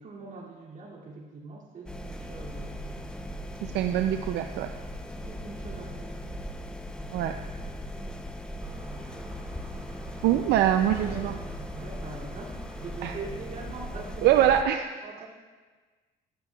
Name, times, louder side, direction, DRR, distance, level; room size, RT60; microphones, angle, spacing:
voice 1, 0.0-2.9 5.2-6.3 10.3-10.7 11.0-11.3 11.7-14.5 15.0-15.3, right 3 dB, 50° right, -4 dB, 2.6 m, -43 dB
sound 1, 1.9-14.6, equal, 5° left, 0.6 m, -38 dB
voice 2, 3.7-4.7 7.1-7.3 10.2-11.3 13.0-13.1 14.2-14.8, right 11 dB, 80° right, 7 dB, 0.4 m, -23 dB
sound 2, 8.6-14.2, right 1 dB, 15° right, 1.9 m, -46 dB
13.0 x 10.5 x 2.3 m, 1.4 s
cardioid pair, 110°, 17 cm